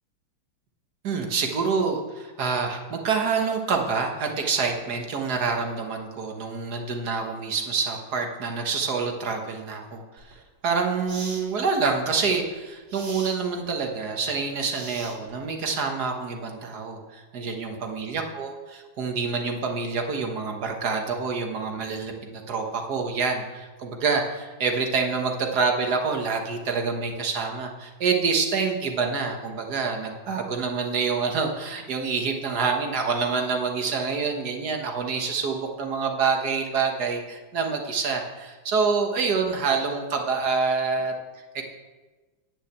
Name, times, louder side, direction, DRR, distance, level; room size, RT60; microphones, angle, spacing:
voice 1, 1.0-10.2 10.6-41.1 41.6-41.7, right 5 dB, 55° right, 3 dB, 1.8 m, -27 dB
sound 1, 10.2-10.3 11.1-11.5 12.9-13.4 14.7-15.4, right 3 dB, 80° right, 2.9 m, -40 dB
10.0 x 6.3 x 8.1 m, 1.3 s
omnidirectional pair, 2.2 m